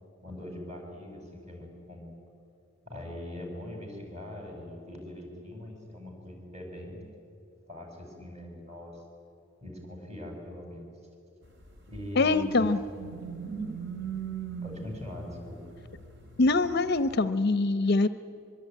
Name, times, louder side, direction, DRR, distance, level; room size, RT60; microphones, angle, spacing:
voice 1, 0.2-2.2 2.9-7.1 7.7-9.0 9.6-10.9 11.9-12.7 14.6-15.6, left 1 dB, 30° right, 2 dB, 5.8 m, -41 dB
sound 1, 11.6-17.2, right 6 dB, 55° right, 2.8 m, -39 dB
voice 2, 12.2-12.8 16.4-18.1, left 3 dB, 45° left, 13 dB, 0.6 m, -24 dB
23.5 x 22.5 x 9.2 m, 2.6 s
head